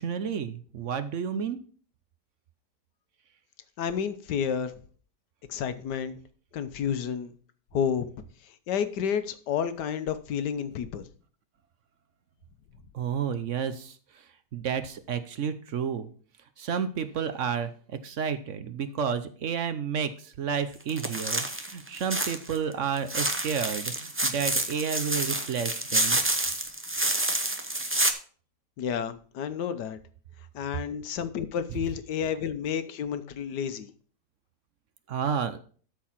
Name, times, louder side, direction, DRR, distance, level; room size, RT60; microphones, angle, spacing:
voice 1, 0.0-1.6 12.9-16.1 16.6-26.2 31.8-31.9 35.1-35.6, right 7 dB, 55° right, 0.9 m, -31 dB
voice 2, 3.8-4.7 5.5-6.2 6.5-7.3 7.7-8.2 8.7-11.0 28.8-30.0 30.5-33.9, left 8 dB, 80° left, 1.5 m, -30 dB
sound 1, 20.9-22.6 22.9-28.1, right 2 dB, 20° right, 0.4 m, -28 dB
12.5 x 4.7 x 5.8 m
omnidirectional pair, 1.8 m